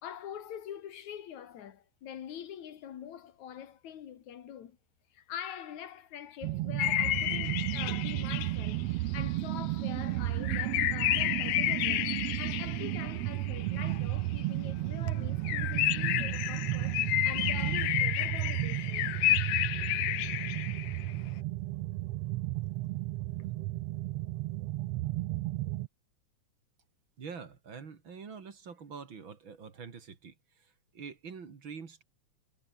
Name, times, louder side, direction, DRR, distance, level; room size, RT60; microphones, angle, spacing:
voice 1, 0.0-4.8 5.1-8.8 9.1-12.1 12.4-19.1, left 9 dB, 70° left, 3.1 m, -44 dB
sound 1, 6.4-25.9, right 18 dB, 90° right, 1.4 m, -33 dB
sound 2, 6.8-9.6 9.9-10.0 10.4-14.4 14.8-14.9 15.1-15.2 15.4-21.1, left 16 dB, 85° left, 2.4 m, -31 dB
voice 2, 27.2-32.0, right 5 dB, 40° right, 2.9 m, -46 dB
omnidirectional pair, 3.5 m